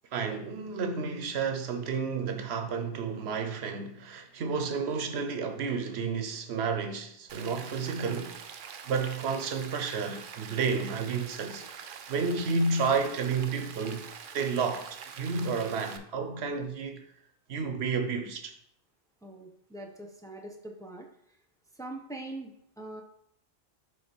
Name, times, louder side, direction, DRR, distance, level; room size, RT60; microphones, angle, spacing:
voice 1, 0.1-8.4 8.8-14.1 14.3-17.0 17.5-18.5, right 5 dB, 85° right, 1.0 m, -31 dB
Rain, 7.3-16.0, right 7 dB, 60° right, 0.7 m, -45 dB
voice 2, 19.2-21.1 21.8-23.0, right 2 dB, 5° left, 0.7 m, -42 dB
7.5 x 3.5 x 4.3 m
omnidirectional pair, 1.0 m